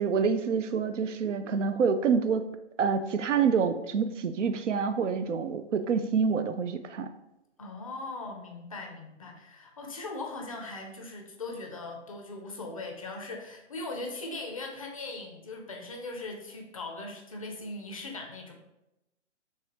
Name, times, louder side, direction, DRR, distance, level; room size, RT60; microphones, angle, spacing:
voice 1, 0.0-2.5 2.8-7.1, right 6 dB, 80° right, 10 dB, 0.5 m, -27 dB
voice 2, 7.6-18.5, left 2 dB, 30° left, 2 dB, 0.4 m, -39 dB
3.5 x 3.1 x 2.8 m, 0.91 s
hypercardioid pair, 150°, 36 cm